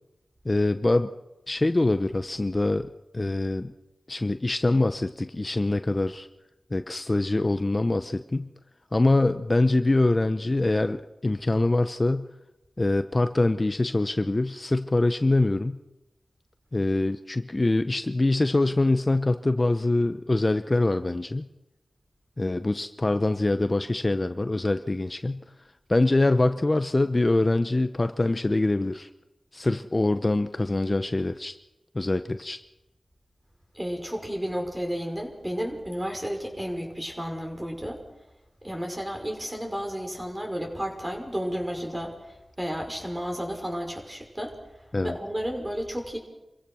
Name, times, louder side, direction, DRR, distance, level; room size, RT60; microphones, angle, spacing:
voice 1, 0.4-1.1 1.5-2.9 3.1-3.7 4.1-6.3 6.7-8.5 8.9-12.3 12.8-15.8 16.7-21.5 22.4-25.4 25.9-29.1 29.5-31.5 31.9-32.6 44.9-45.2, left 2 dB, 35° left, 10 dB, 0.8 m, -24 dB
voice 2, 33.7-38.0 38.6-44.6 45.0-46.2, equal, 20° right, 2 dB, 5.7 m, -32 dB
27.0 x 15.5 x 6.3 m, 0.95 s
cardioid pair, 50°, 0 cm